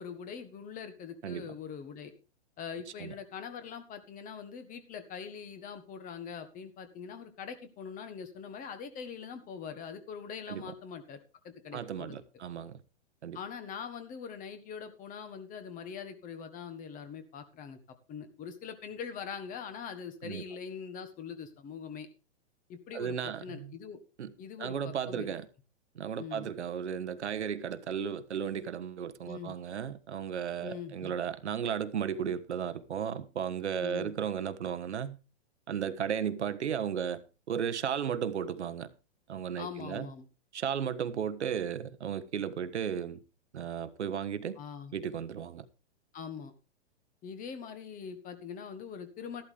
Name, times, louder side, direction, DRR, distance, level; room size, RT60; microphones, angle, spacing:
voice 1, 0.0-2.1 2.6-12.2 13.3-17.8 18.1-22.1 22.7-24.0 24.4-25.3 26.2-26.5 29.2-29.5 30.6-31.1 33.8-34.1 39.6-40.3 44.6-44.9 46.1-46.5 47.2-49.4, left 6 dB, 25° left, 1.5 m, -43 dB
voice 2, 11.7-12.8 13.2-13.4 20.2-20.4 22.9-23.7 24.2-24.3 24.6-25.5 25.9-35.2 35.7-38.9 39.3-40.1 40.5-43.2 43.5-44.6 44.9-45.7, right 8 dB, 75° right, 1.3 m, -35 dB
13.5 x 12.0 x 3.4 m
hypercardioid pair, 125°, 34 cm